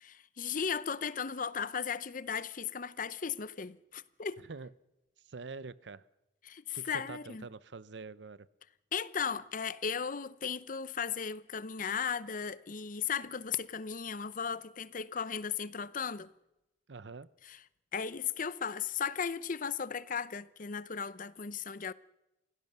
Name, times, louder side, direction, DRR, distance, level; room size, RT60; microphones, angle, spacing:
voice 1, 0.0-4.4 6.5-7.4 8.9-16.3 17.5-17.6 17.9-21.9, left 6 dB, 50° left, 0.7 m, -36 dB
voice 2, 4.4-4.7 5.2-6.0 6.7-8.5 16.9-17.3, right 4 dB, 90° right, 0.7 m, -45 dB
28.0 x 16.5 x 6.8 m
head